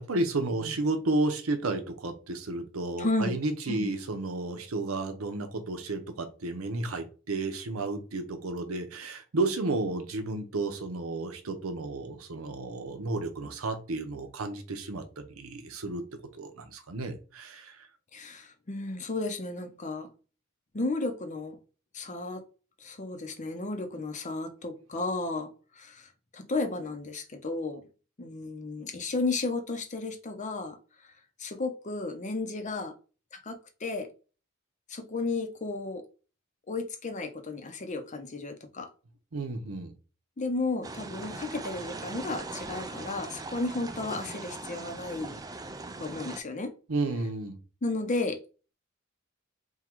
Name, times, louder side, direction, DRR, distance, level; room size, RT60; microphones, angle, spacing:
voice 1, 0.0-16.0 16.3-17.9 39.3-39.9 46.9-47.6, right 2 dB, 80° right, 6 dB, 0.8 m, -32 dB
voice 2, 3.0-3.4 3.7-3.9 18.1-20.1 20.7-21.6 21.9-22.4 22.8-25.5 25.8-27.8 28.2-30.8 31.4-32.9 33.3-34.1 34.9-36.0 36.7-38.9 40.4-45.4 46.0-46.7 47.8-48.4, left 3 dB, 35° left, 7 dB, 0.6 m, -33 dB
sound 1, 40.8-46.4, right 3 dB, 15° right, 0.3 m, -40 dB
3.7 x 2.3 x 4.4 m, 0.36 s
head